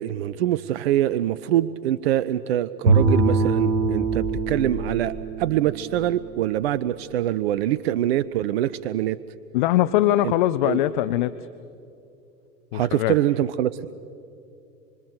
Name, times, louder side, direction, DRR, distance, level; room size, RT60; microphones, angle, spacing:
voice 1, 0.0-9.2 10.6-10.8 12.7-13.7, right 12 dB, 40° right, 17 dB, 0.5 m, -24 dB
Bowed string instrument, 2.9-7.1, right 3 dB, 80° right, 3.0 m, -24 dB
sound 1, 3.7-8.2, left 3 dB, ahead, 1.4 m, -39 dB
voice 2, 9.5-11.4 12.7-13.1, left 13 dB, 30° left, 14 dB, 0.5 m, -21 dB
26.0 x 25.0 x 6.7 m, 2.6 s
figure-of-eight pair, 100°, 49 cm